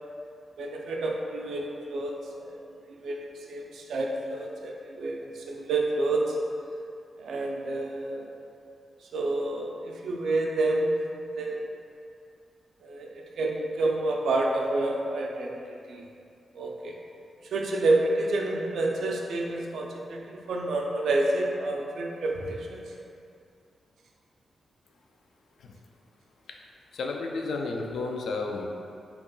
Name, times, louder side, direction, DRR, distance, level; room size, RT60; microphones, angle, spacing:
voice 1, 0.6-6.4 7.2-8.3 9.1-10.9 11.3-11.6 12.8-16.0 16.5-16.9 17.4-22.9, right 2 dB, 85° right, 0 dB, 0.4 m, -29 dB
voice 2, 26.9-28.7, left 3 dB, 80° left, 1 dB, 0.3 m, -32 dB
2.9 x 2.2 x 3.7 m, 2.5 s
wide cardioid pair, 130°, 0 cm